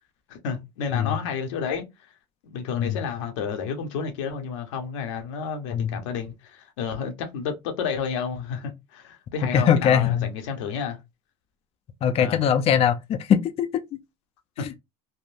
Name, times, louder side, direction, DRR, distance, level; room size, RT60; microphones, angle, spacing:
voice 1, 0.3-1.9 2.4-11.0 12.2-12.4 14.6-14.7, left 6 dB, 90° left, 0.8 m, -31 dB
voice 2, 9.5-10.3 12.0-14.0, left 8 dB, 40° left, 0.4 m, -22 dB
3.5 x 2.1 x 2.5 m
supercardioid pair, 100°, 15 cm